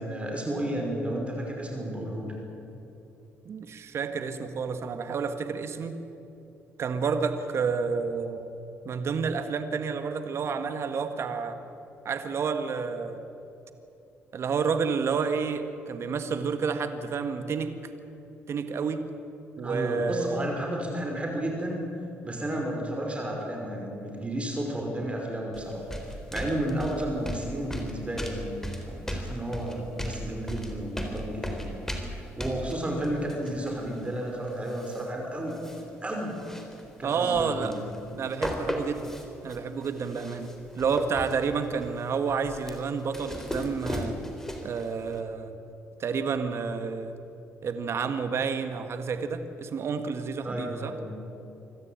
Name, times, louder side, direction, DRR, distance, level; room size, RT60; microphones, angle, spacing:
voice 1, 0.0-2.3 19.6-21.8 22.2-25.8 26.3-28.6 28.9-31.8 32.1-35.6 36.0-36.4 37.0-37.8 50.4-51.1, right 1 dB, 25° right, 1 dB, 5.5 m, -32 dB
voice 2, 3.4-6.0 6.8-8.5 8.8-11.6 12.0-13.2 14.3-17.7 18.5-19.0 19.6-20.5 37.0-37.8 38.1-39.1 39.4-44.2 44.6-45.5 46.0-47.1 47.6-50.9, right 5 dB, 55° right, 8 dB, 1.8 m, -30 dB
sound 1, 25.5-35.1 35.5-35.8 36.1-38.0 38.3-44.9 45.1-45.2, equal, 10° left, 4.0 m, -36 dB
25.5 x 14.0 x 9.1 m, 2.9 s
supercardioid pair, 65°, 5 cm